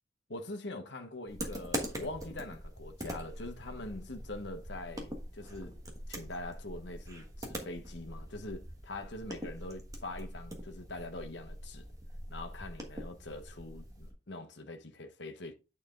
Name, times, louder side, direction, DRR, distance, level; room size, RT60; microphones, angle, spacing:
voice 1, 0.3-5.8 6.1-11.8 12.3-15.5, left 2 dB, 75° left, 1.1 m, -43 dB
sound 1, 1.3-14.1, equal, 20° right, 1.3 m, -43 dB
9.1 x 4.4 x 3.7 m
head